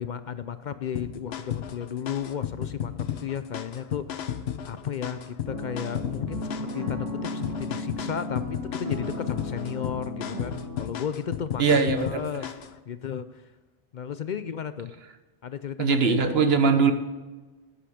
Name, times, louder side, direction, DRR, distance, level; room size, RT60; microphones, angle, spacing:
voice 1, 0.0-2.9 3.2-11.6 11.9-12.5 12.9-13.5 13.9-14.9 15.4-16.2, left 8 dB, 55° left, 12 dB, 0.6 m, -34 dB
sound 1, 1.0-12.8, left 9 dB, 80° left, 1.0 m, -34 dB
sound 2, 5.5-10.8, left 1 dB, 35° right, 1.9 m, -35 dB
voice 2, 11.6-12.2 15.8-16.9, right 5 dB, 75° right, 8 dB, 1.3 m, -21 dB
11.5 x 8.6 x 5.0 m, 1.2 s
omnidirectional pair, 1.1 m